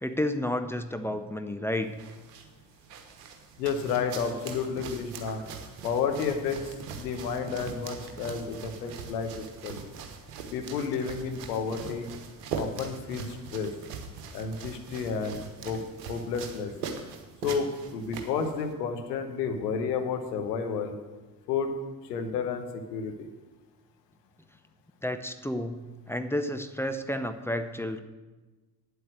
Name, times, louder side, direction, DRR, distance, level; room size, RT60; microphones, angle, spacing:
voice 1, 0.0-2.0 25.0-28.0, left 1 dB, 5° left, 8 dB, 0.6 m, -31 dB
sound 1, 1.7-18.7, right 5 dB, 70° right, 1.2 m, -41 dB
voice 2, 3.6-5.4 5.8-9.8 10.5-12.1 12.5-13.7 14.3-15.8 16.1-16.7 17.4-17.7 17.9-20.9 21.5-21.7 22.1-23.3, left 6 dB, 75° left, 6 dB, 1.1 m, -31 dB
9.2 x 7.9 x 6.3 m, 1.2 s
figure-of-eight pair, 50°, 49 cm